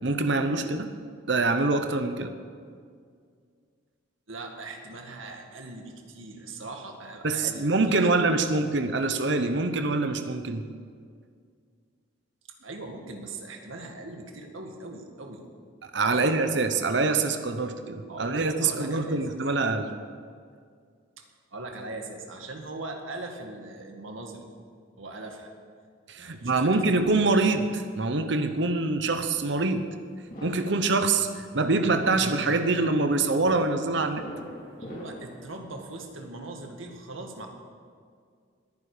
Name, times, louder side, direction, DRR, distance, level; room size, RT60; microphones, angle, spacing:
voice 1, 0.0-0.9 1.3-2.3 7.2-10.6 15.8-19.9 26.1-29.9 30.4-34.2, right 3 dB, 60° right, 8 dB, 0.9 m, -25 dB
voice 2, 4.3-8.5 12.6-15.4 16.1-16.4 18.1-19.2 21.2-21.3 21.5-24.5 25.0-25.5 26.2-26.7 34.8-37.5, right 2 dB, 85° right, 3 dB, 2.0 m, -40 dB
sound 1, 26.4-35.4, equal, 45° left, 2.9 m, -46 dB
21.5 x 9.9 x 5.0 m, 2.1 s
head